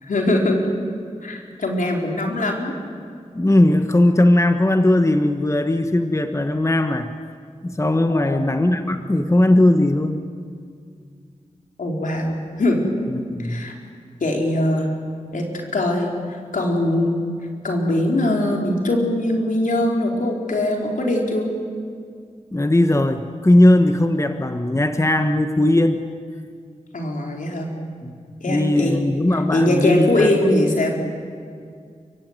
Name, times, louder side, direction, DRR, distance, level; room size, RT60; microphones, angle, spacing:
voice 1, 0.0-0.6 1.2-2.7 8.1-8.5 8.9-9.0 11.8-12.8 13.4-13.7 14.2-14.9 15.3-15.5 15.7-16.1 16.5-17.2 17.6-21.5 26.9-27.7 28.4-29.0 29.5-30.9, left 1 dB, 80° left, 1 dB, 4.3 m, -21 dB
voice 2, 3.3-7.1 7.6-10.2 13.1-13.7 22.5-26.0 28.0-28.1 28.5-30.4, left 1 dB, 20° left, 7 dB, 1.4 m, -18 dB
29.0 x 16.0 x 9.6 m, 2.2 s
cardioid pair, 50°, 13 cm